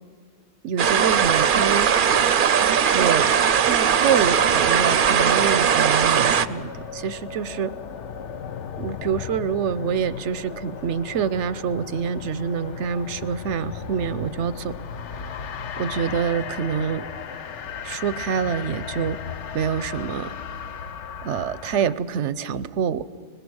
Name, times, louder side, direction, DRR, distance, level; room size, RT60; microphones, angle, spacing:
voice 1, 0.6-1.9 2.9-3.3 3.6-7.7 8.8-14.7 15.8-17.0 17.8-19.2 19.5-20.3 21.2-23.0, right 7 dB, 90° right, 15 dB, 1.0 m, -26 dB
sound 1, 0.8-6.5, right 7 dB, 55° right, 0.7 m, -19 dB
sound 2, 3.1-21.9, left 7 dB, 85° left, 1.1 m, -36 dB
24.0 x 20.5 x 6.3 m, 2.3 s
omnidirectional pair, 1.2 m